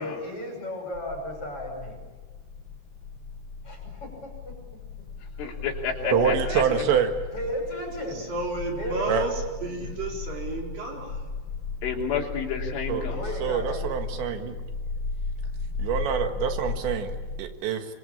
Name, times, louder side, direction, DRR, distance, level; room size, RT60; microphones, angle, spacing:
voice 1, 0.0-2.0 3.6-4.5 5.4-5.5 6.0-6.9 7.3-8.3 8.8-9.3 13.1-13.9, left 1 dB, 30° left, -1 dB, 6.3 m, -34 dB
sound 1, 0.9-17.4, left 3 dB, 65° left, 2.2 m, -36 dB
voice 2, 5.4-6.6 11.8-13.2, left 6 dB, 85° left, -1 dB, 5.8 m, -30 dB
voice 3, 6.1-7.1 9.1-9.3 12.9-13.1 13.4-14.6 15.8-17.9, right 8 dB, 70° right, 6 dB, 3.8 m, -26 dB
voice 4, 8.1-11.4, right 2 dB, 50° right, 1 dB, 5.4 m, -32 dB
25.0 x 24.5 x 8.7 m, 1.3 s
omnidirectional pair, 5.4 m